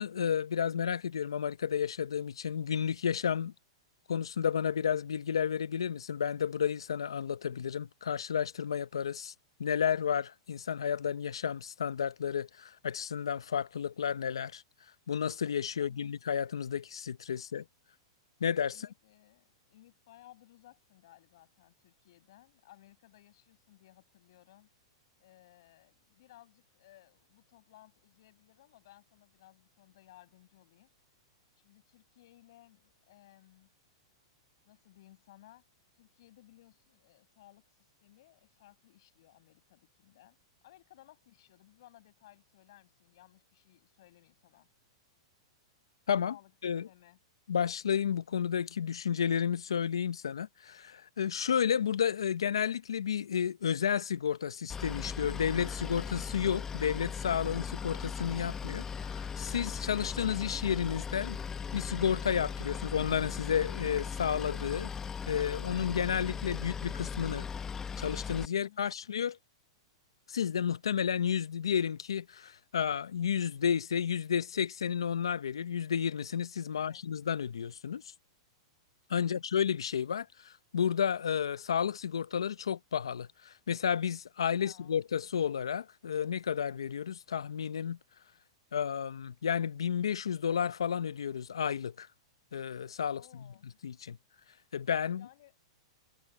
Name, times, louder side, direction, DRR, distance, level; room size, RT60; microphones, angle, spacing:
voice 1, 0.0-3.5 4.1-9.3 9.6-14.6 15.1-17.6 18.4-18.9 46.1-46.4 46.6-46.9 47.5-61.4 61.7-64.9 65.3-67.5 68.0-69.4 70.3-78.1 79.1-88.0 88.7-92.1 92.5-93.2 93.8-94.2 94.7-95.3, left 8 dB, 90° left, 0.7 m, -32 dB
voice 2, 15.7-16.1 17.3-17.7 18.7-24.7 25.2-30.9 31.5-33.7 34.6-35.7 35.9-40.4 40.6-44.7 46.3-46.5 46.8-47.2 68.5-68.9 76.7-77.0 79.2-79.4 84.6-85.0 93.1-93.7 95.1-95.5, left 15 dB, 65° left, 6.2 m, -60 dB
Boat Water vehicle, 54.7-68.5, left 6 dB, 15° left, 0.8 m, -38 dB
hypercardioid pair, 125°, 3 cm